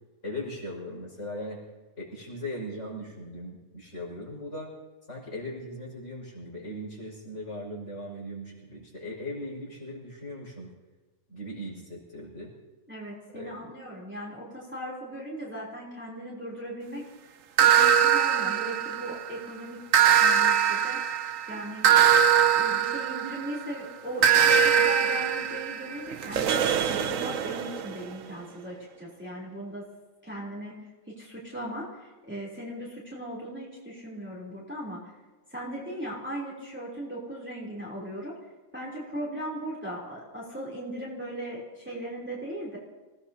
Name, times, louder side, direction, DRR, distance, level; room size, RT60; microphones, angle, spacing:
voice 1, 0.2-1.6 2.0-4.7 5.1-10.7 11.3-12.5 13.3-13.6, left 1 dB, 55° left, -3 dB, 6.2 m, -38 dB
voice 2, 12.9-17.0 17.6-19.8 20.2-21.0 21.5-21.8 22.5-29.8 30.2-30.8 31.1-35.0 35.5-38.3 38.7-42.8, right 1 dB, 5° right, -5 dB, 3.4 m, -38 dB
sound 1, 17.6-19.3 19.9-23.6 24.2-27.9, right 8 dB, 65° right, 1.1 m, -22 dB
27.5 x 17.5 x 2.8 m, 1.3 s
omnidirectional pair, 1.5 m